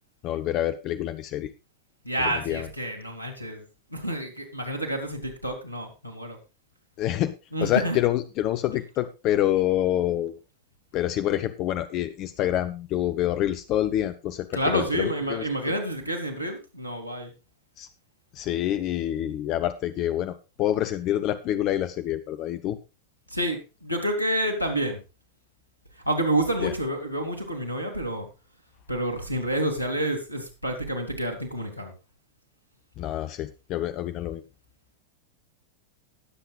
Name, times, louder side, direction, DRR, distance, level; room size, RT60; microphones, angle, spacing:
voice 1, 0.2-1.5 2.2-2.7 7.0-7.3 7.6-10.3 10.9-15.4 17.8-17.9 18.3-22.8 26.6-26.7 33.0-34.4, left 12 dB, 40° left, 12 dB, 0.7 m, -27 dB
voice 2, 2.0-3.6 3.9-6.4 7.5-8.0 14.5-17.3 23.3-25.0 26.0-28.3 28.9-31.9, right 1 dB, 85° left, 6 dB, 2.4 m, -28 dB
20.0 x 7.8 x 2.4 m, 0.29 s
figure-of-eight pair, 90°, 0 cm